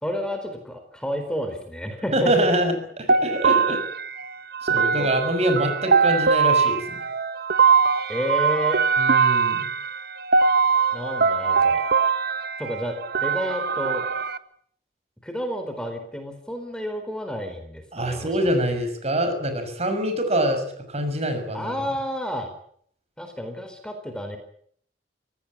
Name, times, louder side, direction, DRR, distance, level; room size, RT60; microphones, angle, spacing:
voice 1, 0.0-2.5 5.0-5.1 8.1-8.8 10.9-11.8 12.6-14.0 15.2-18.3 21.5-22.5 23.2-24.4, equal, 5° left, 6 dB, 4.3 m, -30 dB
voice 2, 2.1-3.8 4.7-6.8 9.0-9.7 17.9-20.6 20.9-21.7, right 1 dB, 40° right, 8 dB, 6.2 m, -24 dB
sound 1, 3.1-14.4, right 5 dB, 60° right, 1.3 m, -22 dB
26.0 x 18.5 x 8.6 m, 0.64 s
head